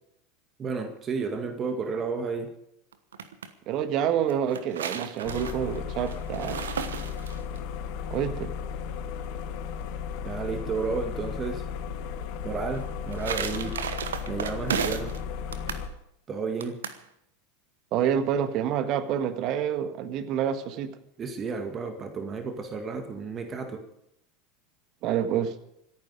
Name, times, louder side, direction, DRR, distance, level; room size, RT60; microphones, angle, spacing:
voice 1, 0.6-2.5 10.2-11.6 12.4-13.8 14.3-15.1 15.7-15.8 16.3-16.8 21.2-23.8, right 4 dB, 30° right, 6 dB, 2.0 m, -32 dB
sound 1, 2.9-3.5 4.3-7.6 12.7-15.2 15.5-15.9 16.6-17.0, right 7 dB, 75° right, 1.1 m, -34 dB
voice 2, 3.7-6.6 8.1-8.5 17.9-20.9 25.0-25.5, right 9 dB, 45° right, 11 dB, 1.6 m, -27 dB
sound 2, 5.2-15.9, left 7 dB, 55° left, 1.7 m, -35 dB
26.5 x 9.5 x 5.1 m, 0.77 s
figure-of-eight pair, 80°, 0 cm